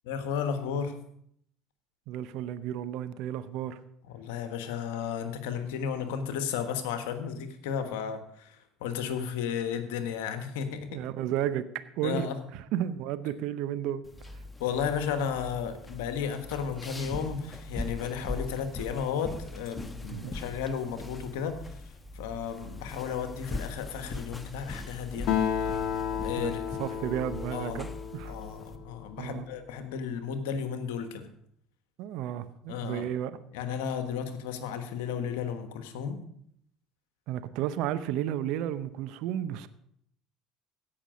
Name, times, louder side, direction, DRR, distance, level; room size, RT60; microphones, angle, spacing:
voice 1, 0.0-0.9 4.1-11.0 12.0-12.4 14.6-21.6 22.1-25.3 25.6-25.7 26.2-26.7 27.5-27.9 28.2-31.3 32.7-33.1 33.5-36.2, left 7 dB, 75° left, 8 dB, 1.3 m, -33 dB
voice 2, 2.1-3.8 10.9-14.0 20.1-20.3 26.4-26.5 26.8-28.3 29.2-29.5 32.0-33.4 37.3-39.7, right 11 dB, 65° right, 13 dB, 0.7 m, -33 dB
sound 1, 14.0-28.8, left 2 dB, 15° left, 1.0 m, -41 dB
Acoustic guitar, 25.3-29.1, left 8 dB, 60° left, 1.4 m, -32 dB
16.5 x 6.0 x 5.1 m, 0.70 s
hypercardioid pair, 70°, 0 cm